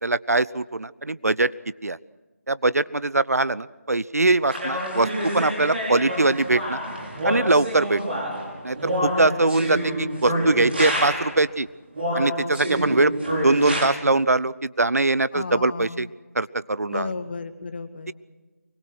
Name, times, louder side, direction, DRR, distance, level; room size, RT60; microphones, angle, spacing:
voice 1, 0.0-1.5 1.8-2.0 2.5-5.1 5.3-6.8 7.2-8.0 8.6-11.7 12.1-13.1 13.4-16.1 16.3-17.1, right 2 dB, 75° right, 18 dB, 0.8 m, -22 dB
sound 1, 4.5-11.4 11.9-13.9, equal, 40° right, 5.8 m, -28 dB
voice 2, 8.8-9.4 15.3-16.1 16.8-18.1, left 3 dB, 40° left, 8 dB, 1.9 m, -34 dB
24.5 x 22.5 x 6.2 m, 1.2 s
figure-of-eight pair, 165°, 8 cm